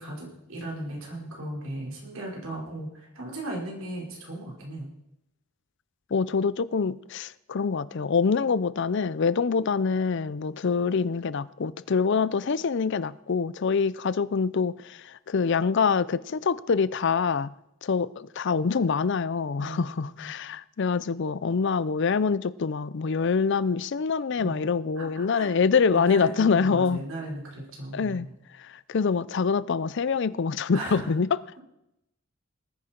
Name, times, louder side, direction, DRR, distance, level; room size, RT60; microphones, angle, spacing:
voice 1, 0.0-4.9 19.6-20.3 24.4-24.6 25.0-25.5 25.9-28.3 30.7-31.1, right 1 dB, 80° right, 4.8 m, -37 dB
voice 2, 6.1-17.5 17.8-27.0 27.9-28.3 28.9-31.4, left 5 dB, 55° left, 0.5 m, -25 dB
19.5 x 10.0 x 4.4 m
head